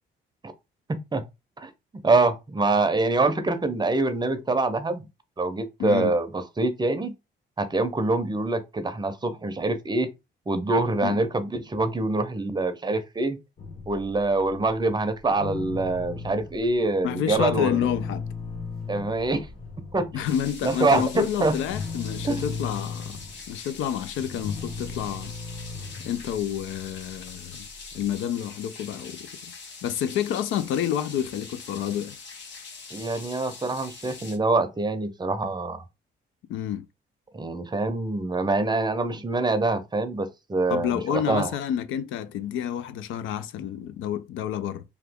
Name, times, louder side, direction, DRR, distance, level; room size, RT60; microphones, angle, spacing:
voice 1, 0.9-1.3 1.6-1.7 2.0-5.0 5.4-7.1 7.6-10.1 10.5-13.4 13.9-17.9 18.9-19.5 19.9-20.2 20.6-21.6 22.2-22.4 32.9-35.8 37.3-41.5, right 3 dB, 20° right, 0.6 m, -25 dB
voice 2, 5.8-6.1 11.0-11.2 17.0-18.2 20.1-23.2 23.5-25.3 26.0-27.7 27.9-29.3 29.8-32.2 36.5-36.9 40.7-44.8, left 9 dB, 85° left, 0.4 m, -29 dB
sound 1, 13.6-16.7 17.2-28.1, left 4 dB, 45° left, 1.2 m, -37 dB
sound 2, 20.2-34.4, left 4 dB, 65° left, 1.0 m, -43 dB
2.9 x 2.3 x 3.5 m
cardioid pair, 90°, 20 cm